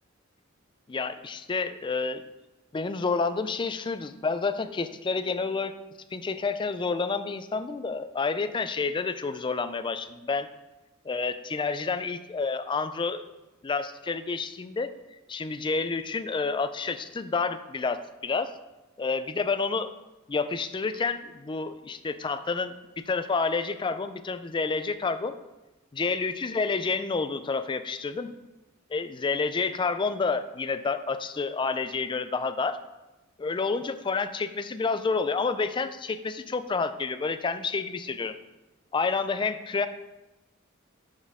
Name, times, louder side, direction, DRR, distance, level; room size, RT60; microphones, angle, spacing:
voice 1, 0.9-2.2 2.7-5.7 6.1-10.5 11.0-13.2 13.6-14.9 15.3-18.5 19.0-19.9 20.3-25.3 25.9-28.3 28.9-32.8 33.4-38.3 38.9-39.9, left 4 dB, 25° left, 11 dB, 0.4 m, -29 dB
11.0 x 4.4 x 3.6 m, 1.0 s
head